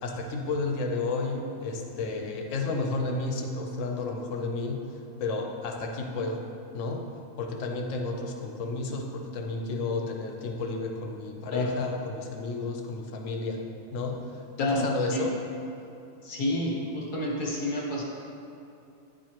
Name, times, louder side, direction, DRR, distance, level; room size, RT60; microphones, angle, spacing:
voice 1, 0.0-4.9 5.2-6.4 6.7-7.1 7.4-13.6 13.9-15.4, left 3 dB, 60° left, 3 dB, 0.9 m, -32 dB
voice 2, 14.6-15.2 16.2-18.0, left 1 dB, 35° left, -3 dB, 1.0 m, -29 dB
9.6 x 4.7 x 2.9 m, 2.7 s
omnidirectional pair, 1.7 m